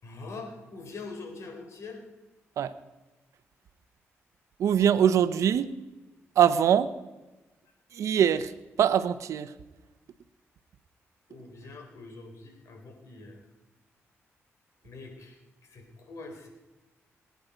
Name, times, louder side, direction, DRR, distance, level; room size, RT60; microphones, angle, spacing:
voice 1, 0.0-2.0 11.3-13.4 14.8-15.4 15.6-16.5, left 3 dB, 75° left, 3 dB, 4.0 m, -43 dB
voice 2, 4.6-5.7 6.4-6.9 7.9-8.5 8.8-9.5, right 9 dB, 80° right, 13 dB, 0.8 m, -23 dB
22.0 x 9.5 x 5.1 m, 1.1 s
cardioid pair, 70°, 5 cm